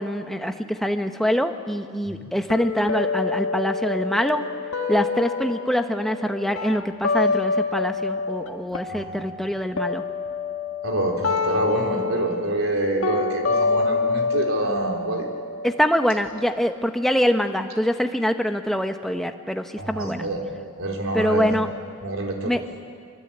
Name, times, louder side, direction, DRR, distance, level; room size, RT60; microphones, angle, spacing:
voice 1, 0.0-4.4 4.9-10.0 15.6-20.2 21.1-21.7 22.4-22.6, equal, ahead, 6 dB, 1.1 m, -24 dB
sound 1, 2.5-8.5 8.7-16.5, left 4 dB, 80° left, 1.5 m, -27 dB
voice 2, 8.9-9.2 10.8-15.3 19.8-20.5 20.8-21.6 22.0-22.6, right 1 dB, 80° right, 1 dB, 4.0 m, -26 dB
25.0 x 23.5 x 8.9 m, 2.2 s
head